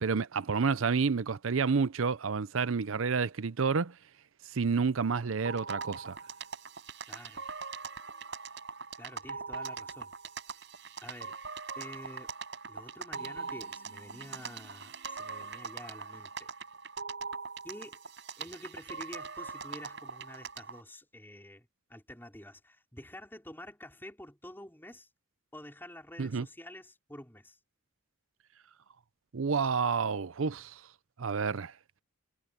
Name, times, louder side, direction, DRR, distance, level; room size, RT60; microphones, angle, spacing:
voice 1, 0.0-3.9 4.5-6.2 26.2-26.5 29.3-30.8 31.2-31.7, right 5 dB, 80° right, 0.6 m, -29 dB
sound 1, 5.4-20.8, right 5 dB, 60° right, 5.6 m, -42 dB
voice 2, 7.1-7.5 9.0-10.1 10.5-10.6 11.0-11.4 11.7-12.3 12.7-16.5 17.6-18.0 18.4-25.1 25.5-27.6, left 1 dB, 10° left, 5.0 m, -48 dB
head